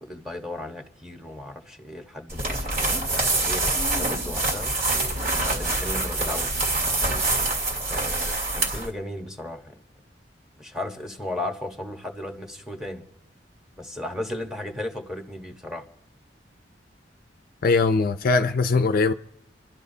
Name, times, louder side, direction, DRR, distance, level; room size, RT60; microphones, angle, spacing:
voice 1, 0.0-4.7 5.4-6.7 7.9-9.7 10.6-13.0 13.8-15.8, left 1 dB, 5° right, 1.2 m, -35 dB
sound 1, 2.3-8.9, right 2 dB, 55° right, 2.9 m, -25 dB
voice 2, 17.6-19.1, left 3 dB, 50° left, 0.5 m, -21 dB
29.5 x 12.0 x 2.8 m
head